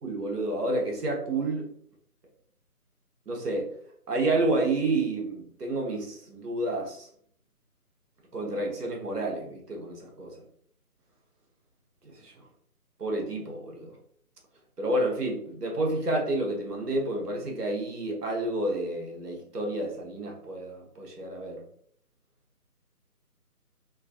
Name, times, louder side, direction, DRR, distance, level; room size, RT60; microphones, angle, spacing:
voice 1, 0.0-1.7 3.3-3.7 4.1-7.1 8.3-10.3 12.0-12.4 13.0-14.0 14.8-21.6, right 2 dB, 80° right, 0 dB, 1.3 m, -30 dB
3.7 x 2.4 x 2.4 m, 0.63 s
figure-of-eight pair, 160°, 46 cm